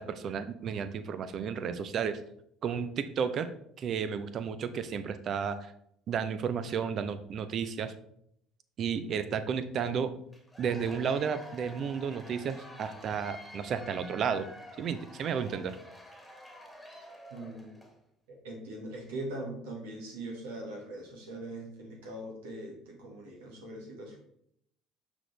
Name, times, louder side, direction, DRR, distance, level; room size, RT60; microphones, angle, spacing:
voice 1, 0.0-2.2 2.6-3.5 3.8-5.7 6.1-7.9 8.8-10.1 10.6-14.5 14.8-15.8, right 7 dB, 50° right, 11 dB, 0.6 m, -32 dB
Cheering / Applause / Crowd, 10.3-18.0, left 1 dB, 5° left, 1.6 m, -49 dB
voice 2, 17.3-17.8 18.4-24.2, right 1 dB, 80° right, -1 dB, 1.8 m, -41 dB
6.1 x 5.2 x 3.3 m, 0.71 s
hypercardioid pair, 65°, 0 cm